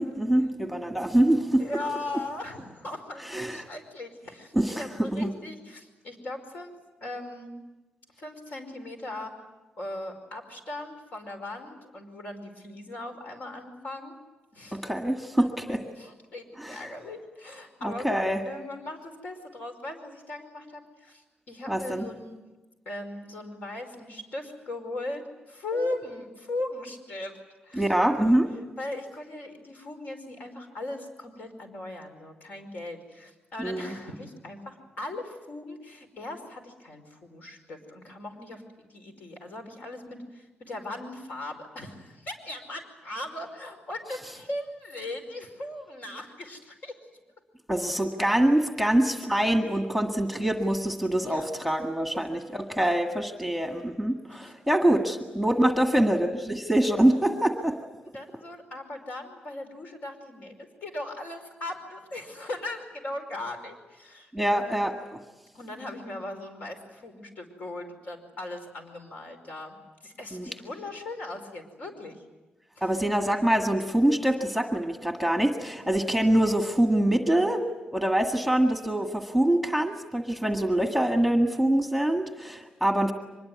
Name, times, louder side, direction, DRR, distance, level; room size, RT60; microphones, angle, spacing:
voice 1, 0.0-1.7 3.2-3.7 4.6-5.3 14.7-15.8 16.6-16.8 17.8-18.4 21.7-22.1 27.7-28.5 33.6-34.0 47.7-57.8 64.3-64.9 70.3-70.5 72.8-77.7 77.9-83.1, right 1 dB, ahead, 3 dB, 1.8 m, -25 dB
voice 2, 1.6-6.7 7.0-7.5 8.2-9.3 9.8-14.2 14.5-14.9 15.4-22.4 22.9-27.4 27.6-27.9 28.8-47.0 51.2-51.5 54.4-54.5 55.7-55.8 58.0-64.8 65.5-69.8 70.0-72.2 72.8-72.9 73.2-73.3, left 2 dB, 60° left, 5 dB, 5.1 m, -38 dB
24.5 x 21.0 x 9.4 m, 1.1 s
wide cardioid pair, 140°, 3 cm